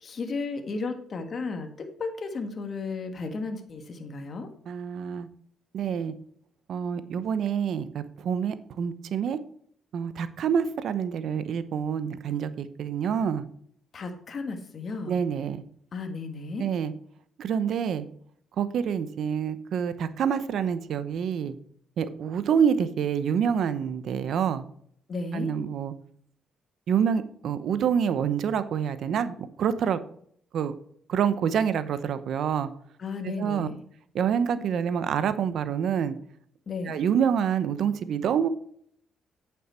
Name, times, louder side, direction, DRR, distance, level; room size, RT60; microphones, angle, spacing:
voice 1, 0.0-4.5 13.9-15.2 15.9-16.7 25.1-25.5 33.0-33.8 36.7-37.0, left 4 dB, 45° left, 5 dB, 1.5 m, -34 dB
voice 2, 4.7-5.3 5.7-6.1 6.7-9.4 9.9-13.4 15.1-15.6 16.6-16.9 17.4-18.1 18.6-21.5 22.0-24.6 25.3-25.9 26.9-30.0 30.5-30.7 31.1-32.7 33.2-33.7 34.1-36.2 36.9-38.5, right 7 dB, 65° right, 12 dB, 0.8 m, -27 dB
8.8 x 7.1 x 4.4 m, 0.63 s
cardioid pair, 90°, 0 cm